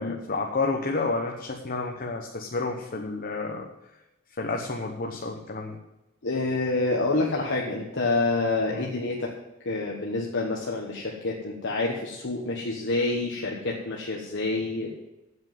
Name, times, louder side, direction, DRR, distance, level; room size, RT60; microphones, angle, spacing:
voice 1, 0.0-3.7 4.4-5.8 8.7-8.9, left 3 dB, 45° left, 1 dB, 1.0 m, -30 dB
voice 2, 6.2-9.3 9.6-14.9, left 2 dB, 60° left, -2 dB, 1.3 m, -27 dB
8.0 x 7.8 x 7.7 m, 0.96 s
head